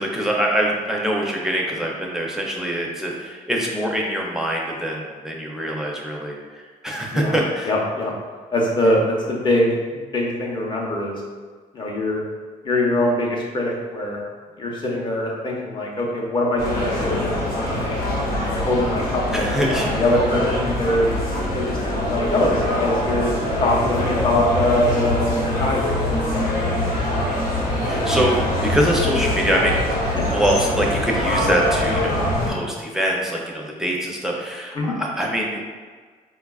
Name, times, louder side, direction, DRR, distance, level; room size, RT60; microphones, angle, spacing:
voice 1, 0.0-7.7 19.3-19.9 27.9-29.8 30.3-35.6, right 1 dB, 5° right, -2 dB, 0.4 m, -24 dB
voice 2, 7.7-8.1 8.5-11.2 11.7-12.2 12.6-14.2 14.6-17.9 18.4-21.1 21.5-23.3 23.6-25.8 26.2-26.6 30.2-30.3 34.7-34.9, left 1 dB, 30° left, -2 dB, 0.7 m, -23 dB
sound 1, 16.6-32.5, left 1 dB, 70° left, 1.0 m, -23 dB
4.6 x 2.3 x 2.3 m, 1.5 s
cardioid pair, 135°, 15 cm